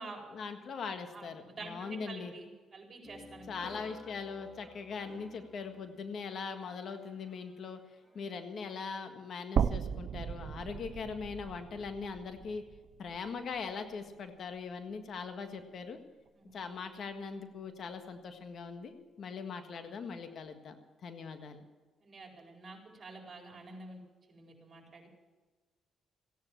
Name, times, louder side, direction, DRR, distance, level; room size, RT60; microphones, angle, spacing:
voice 1, 0.3-2.3 3.5-7.8 8.1-12.7 13.0-16.0 16.5-20.7 21.0-21.6, left 5 dB, 60° left, 7 dB, 1.6 m, -41 dB
voice 2, 1.1-3.5 16.3-16.6 22.0-24.0 24.3-25.1, right 3 dB, 35° right, 2 dB, 4.4 m, -48 dB
sound 1, 3.0-8.4, left 1 dB, 10° left, 2.5 m, -55 dB
sound 2, 9.6-13.7 14.1-14.2 15.6-15.7, right 8 dB, 60° right, 0.5 m, -36 dB
16.0 x 10.5 x 7.3 m, 1.3 s
cardioid pair, 90°, 0 cm